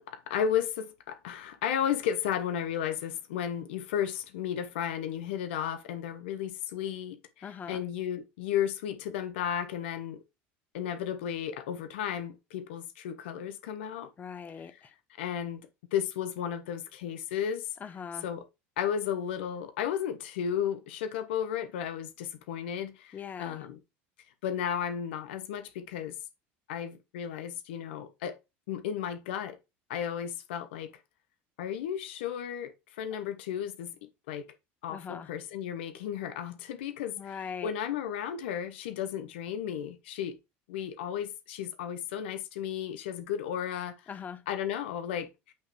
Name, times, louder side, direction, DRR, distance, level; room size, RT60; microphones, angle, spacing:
voice 1, 0.0-10.2 10.7-14.1 14.6-14.9 15.2-17.7 18.2-18.5 18.8-23.8 24.4-26.2 26.7-28.4 28.7-29.6 29.9-30.9 31.6-33.9 34.3-34.5 34.8-40.4 40.7-44.1 44.5-45.5, left 9 dB, 90° left, 0.8 m, -34 dB
voice 2, 7.4-7.8 14.2-14.9 17.8-18.2 23.1-23.6 34.9-35.3 37.2-37.7 44.1-44.4, left 7 dB, 30° left, 0.8 m, -41 dB
8.5 x 3.0 x 4.6 m
supercardioid pair, 110°, 6 cm